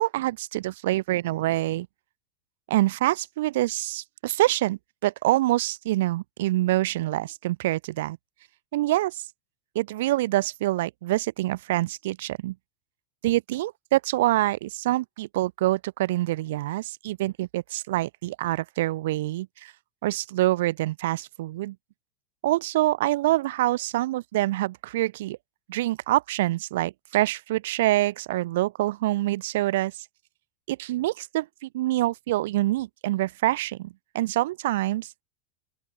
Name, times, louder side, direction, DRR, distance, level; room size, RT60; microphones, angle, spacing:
voice 1, 0.0-1.9 2.7-8.2 8.7-9.2 9.7-12.5 13.2-19.7 20.0-21.8 22.4-25.4 25.7-30.0 30.7-35.2, right 16 dB, 75° right, 0.9 m, -26 dB
open air
supercardioid pair, 130°, 0 cm